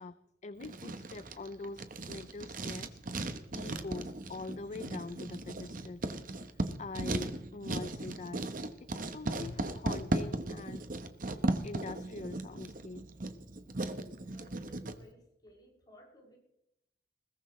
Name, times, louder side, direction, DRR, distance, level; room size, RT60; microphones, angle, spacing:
voice 1, 0.0-3.0 3.5-6.1 6.8-8.4 8.9-10.8 11.6-13.0, left 3 dB, 40° left, 14 dB, 0.4 m, -43 dB
Writing, 0.6-15.0, right 2 dB, 50° right, 1.1 m, -37 dB
voice 2, 13.9-16.4, equal, 25° left, -4 dB, 6.3 m, -58 dB
21.0 x 17.5 x 3.2 m, 0.84 s
head